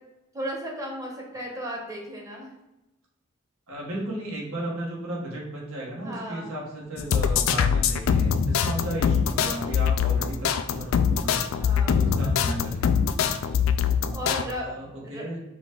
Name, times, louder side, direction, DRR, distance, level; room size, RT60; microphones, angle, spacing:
voice 1, 0.3-2.5 6.0-6.5 8.6-8.7 11.6-12.1 14.1-14.7 15.1-15.2, equal, 15° right, -1 dB, 0.9 m, -35 dB
voice 2, 3.7-13.0 14.3-15.4, right 1 dB, 85° right, -3 dB, 1.4 m, -35 dB
sound 1, 7.0-14.4, left 7 dB, 70° left, 0.3 m, -23 dB
4.9 x 2.4 x 3.7 m, 0.97 s
head